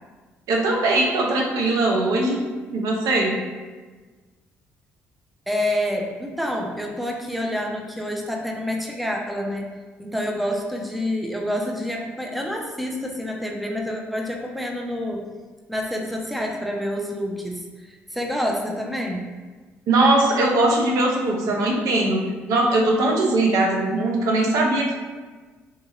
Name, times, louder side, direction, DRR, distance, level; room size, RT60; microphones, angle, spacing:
voice 1, 0.5-2.4 2.7-3.3 19.9-22.2 22.5-25.0, right 2 dB, 65° right, -1 dB, 0.5 m, -20 dB
voice 2, 5.5-9.7 10.0-15.3 15.7-19.3, left 1 dB, ahead, 0 dB, 0.5 m, -28 dB
2.8 x 2.7 x 2.4 m, 1.3 s
hypercardioid pair, 55°, 6 cm